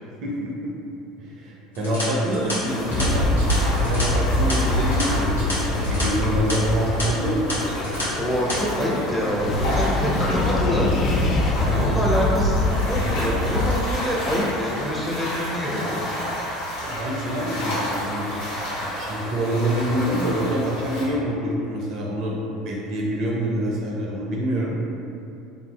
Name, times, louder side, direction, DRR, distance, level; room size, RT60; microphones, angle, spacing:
voice 1, 0.2-0.7 1.2-3.3 3.7-7.4 11.6-12.0 16.8-18.3 18.8-24.7, equal, 55° right, -3 dB, 0.5 m, -26 dB
sound 1, 1.7-6.0 6.3-6.5 7.0-7.1 7.5-8.0 8.3-8.6, left 1 dB, 90° left, 0.7 m, -30 dB
sound 2, 2.3-13.8, left 2 dB, 35° left, 0.3 m, -24 dB
sound 3, 2.6-21.0, equal, 70° left, 1.0 m, -31 dB
voice 2, 8.1-10.9 11.7-16.0, equal, ahead, -5 dB, 0.8 m, -26 dB
3.6 x 2.5 x 2.4 m, 2.7 s
hypercardioid pair, 70°, 0 cm